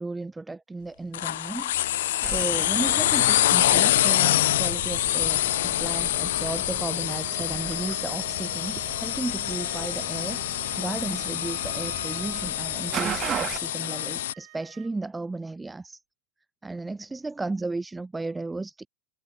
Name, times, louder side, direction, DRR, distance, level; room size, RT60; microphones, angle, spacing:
voice 1, 0.0-16.0 16.6-18.9, right 3 dB, 10° right, 4.4 m, -34 dB
sound 1, 1.1-14.3, left 14 dB, 80° left, 1.2 m, -26 dB
sound 2, 2.2-13.6, right 11 dB, 35° right, 5.3 m, -38 dB
Wind instrument woodwind instrument, 7.1-14.9, right 37 dB, 60° right, 4.4 m, -47 dB
hypercardioid pair, 120°, 0 cm